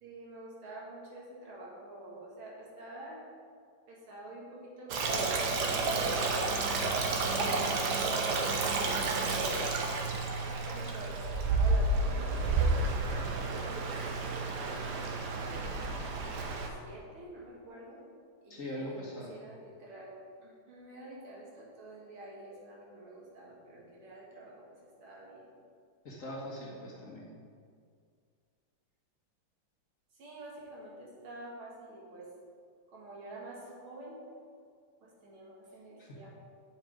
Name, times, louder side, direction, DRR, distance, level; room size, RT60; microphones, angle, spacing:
voice 1, 0.0-3.2 3.9-7.9 8.2-9.9 10.6-13.9 14.9-15.6 16.5-18.0 18.4-19.0 19.3-20.2 20.4-25.5 30.2-32.3 32.9-34.2 35.0-36.3, right 2 dB, 85° right, -4 dB, 2.5 m, -47 dB
Stream, 4.9-16.7, right 3 dB, 60° right, 1.3 m, -31 dB
voice 2, 18.5-19.4 26.1-27.3 36.0-36.3, left 1 dB, 45° left, -5 dB, 1.7 m, -41 dB
7.7 x 5.8 x 5.0 m, 2.2 s
omnidirectional pair, 2.2 m